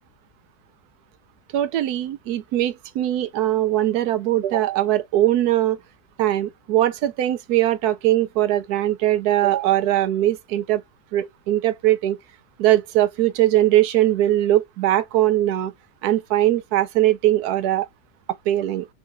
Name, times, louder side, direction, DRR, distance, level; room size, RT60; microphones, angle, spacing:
voice 1, 1.5-5.8 6.2-10.8 11.1-12.2 12.6-15.7 16.0-17.9 18.5-18.9, right 13 dB, 75° right, 1.1 m, -20 dB
3.7 x 2.7 x 3.5 m
omnidirectional pair, 1.7 m